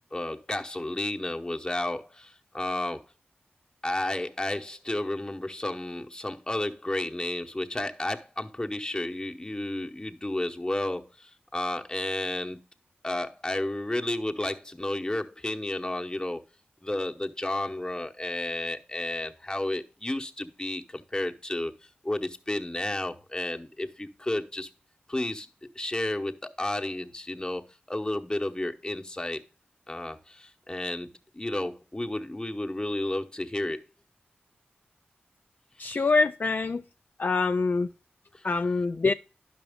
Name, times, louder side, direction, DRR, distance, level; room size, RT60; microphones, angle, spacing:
voice 1, 0.1-3.0 3.8-12.6 13.0-16.4 16.8-21.7 22.0-24.7 25.1-25.5 25.7-29.4 29.9-31.1 31.3-33.8 35.8-36.0 38.3-38.5, left 1 dB, 20° left, 1.0 m, -32 dB
voice 2, 35.8-36.8 37.2-37.9 38.4-39.1, left 4 dB, 50° left, 0.3 m, -25 dB
10.5 x 6.0 x 3.5 m
cardioid pair, 45°, 4 cm